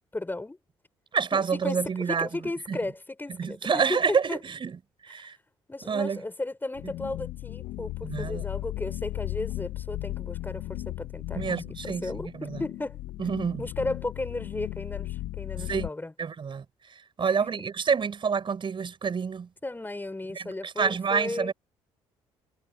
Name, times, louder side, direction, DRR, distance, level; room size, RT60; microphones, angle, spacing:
voice 1, 0.1-0.6 1.3-4.4 5.7-13.0 13.6-16.1 17.2-17.3 17.6-17.7 19.6-21.5, left 2 dB, 15° left, 7.4 m, -35 dB
voice 2, 1.1-2.3 2.7-2.8 3.4-4.7 5.0-5.3 5.8-6.2 8.0-8.4 11.3-12.6 13.2-13.6 15.6-15.9 16.2-16.6 17.2-19.5 20.3-21.5, right 6 dB, 45° right, 6.8 m, -28 dB
sound 1, 6.7-15.9, left 16 dB, 75° left, 2.8 m, -36 dB
hypercardioid pair, 60°, 12 cm